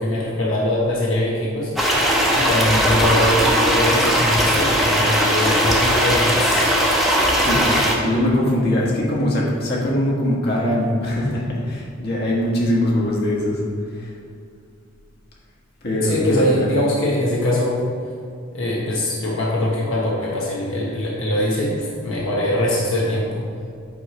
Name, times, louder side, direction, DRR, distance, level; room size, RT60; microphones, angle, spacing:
voice 1, 0.0-2.1 2.3-6.6 16.0-17.8 18.5-23.4, left 1 dB, 80° left, -4 dB, 1.2 m, -22 dB
sound 1, 1.8-8.0, equal, ahead, 0.8 m, -18 dB
voice 2, 7.4-13.6 13.9-14.1 15.8-17.1, left 1 dB, 55° left, -5 dB, 1.5 m, -22 dB
8.7 x 3.2 x 5.0 m, 2.3 s
head